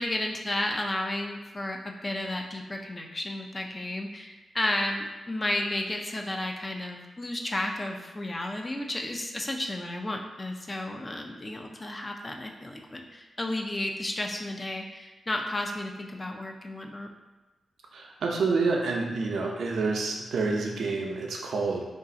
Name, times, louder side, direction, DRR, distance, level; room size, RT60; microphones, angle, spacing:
voice 1, 0.0-17.1, left 1 dB, 25° left, 2 dB, 0.4 m, -32 dB
voice 2, 17.9-21.8, right 4 dB, 80° right, -1 dB, 0.4 m, -28 dB
2.5 x 2.4 x 3.8 m, 1.1 s
cardioid pair, 80°, 0 cm